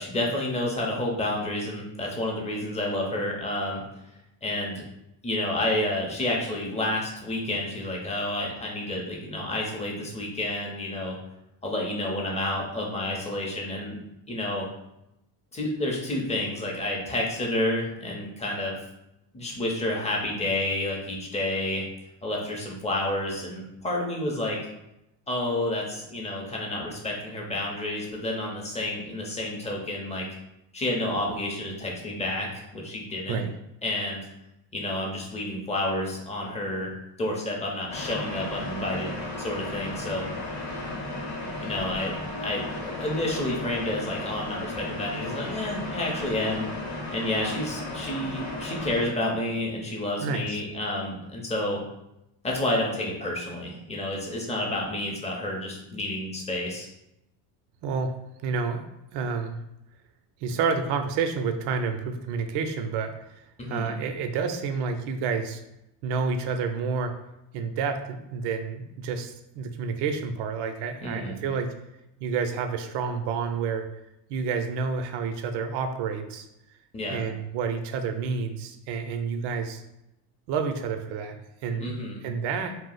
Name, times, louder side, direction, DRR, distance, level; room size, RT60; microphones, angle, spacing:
voice 1, 0.0-3.8 4.4-4.8 5.2-11.2 11.6-14.0 14.3-14.7 15.5-18.8 19.3-21.9 22.2-24.6 25.3-30.3 30.7-33.4 33.8-34.3 34.7-40.3 41.6-42.1 42.4-46.7 47.1-51.8 52.4-56.9 63.6-63.9 71.0-71.4 76.9-77.2 81.8-82.2, left 1 dB, 15° left, -1 dB, 0.6 m, -30 dB
sound 1, 37.9-49.1, left 2 dB, 35° left, 0.9 m, -34 dB
voice 2, 50.2-50.6 57.8-58.1 58.4-58.8 59.1-59.6 60.4-63.1 63.7-65.6 66.0-67.2 67.5-71.7 72.2-73.9 74.3-76.5 77.1-79.8 80.5-82.0 82.2-82.8, right 5 dB, 55° right, 6 dB, 0.5 m, -29 dB
2.3 x 2.0 x 3.8 m, 0.86 s
supercardioid pair, 105°, 49 cm